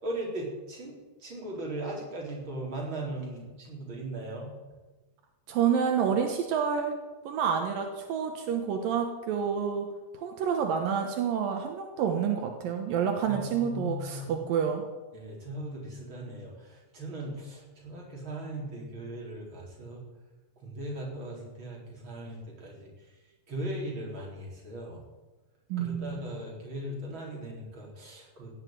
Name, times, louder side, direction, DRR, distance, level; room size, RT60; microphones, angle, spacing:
voice 1, 0.0-0.9 1.2-4.5 13.3-14.4 15.1-20.0 20.6-22.9 23.5-25.0 25.8-28.5, right 1 dB, 35° right, -2 dB, 4.5 m, -38 dB
voice 2, 5.5-7.0 7.2-9.9 10.1-14.8 25.7-26.3, right 7 dB, 80° right, 4 dB, 2.9 m, -28 dB
16.5 x 7.4 x 9.4 m, 1.2 s
omnidirectional pair, 4.0 m